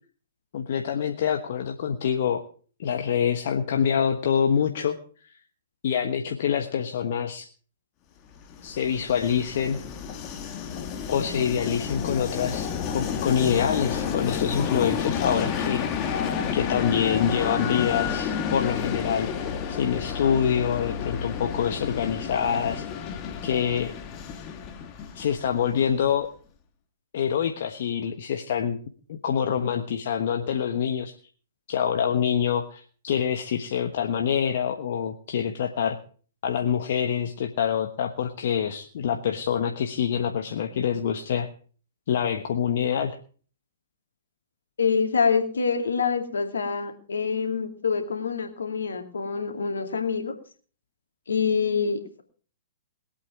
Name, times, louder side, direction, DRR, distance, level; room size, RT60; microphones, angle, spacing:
voice 1, 0.5-2.4 2.8-5.0 5.2-5.4 5.8-7.5 8.6-9.8 11.1-16.1 16.5-22.8 23.4-23.9 25.1-26.3 27.1-28.8 29.1-31.1 31.7-36.0 36.4-41.5 42.1-43.2, left 8 dB, 55° left, 5 dB, 1.2 m, -26 dB
Train, 8.4-26.1, left 7 dB, 30° left, 1.8 m, -31 dB
voice 2, 44.8-50.3 51.3-52.2, left 5 dB, 75° left, 5 dB, 2.5 m, -26 dB
21.0 x 8.6 x 4.8 m, 0.42 s
figure-of-eight pair, 120°, 0 cm